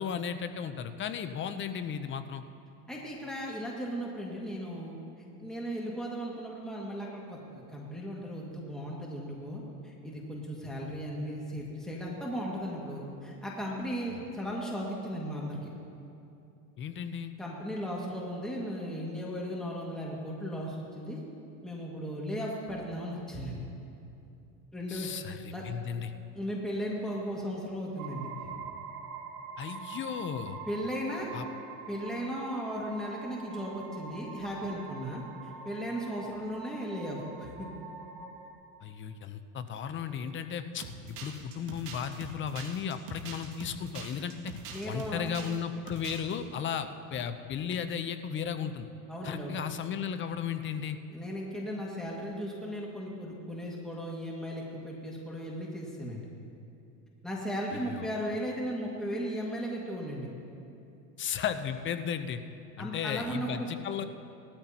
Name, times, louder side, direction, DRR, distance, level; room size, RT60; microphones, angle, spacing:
voice 1, 0.0-2.4 14.1-14.2 16.8-17.3 24.9-26.1 29.6-30.6 31.3-31.5 38.8-44.5 44.8-48.9 49.2-51.0 57.7-58.1 61.2-62.4 62.8-64.0, left 8 dB, 25° left, 10 dB, 0.6 m, -35 dB
voice 2, 2.9-4.9 5.4-15.6 17.4-21.2 21.6-23.7 24.7-25.6 26.3-28.5 30.7-31.3 31.9-37.8 44.7-45.3 49.1-49.6 51.1-56.3 57.2-60.3 62.8-63.7, equal, ahead, -4 dB, 2.0 m, -36 dB
sound 1, 28.0-38.5, right 5 dB, 70° right, 2.0 m, -44 dB
sound 2, 40.8-45.6 45.9-46.4, right 4 dB, 55° right, 2.3 m, -43 dB
18.5 x 13.0 x 2.9 m, 2.7 s
supercardioid pair, 110°, 46 cm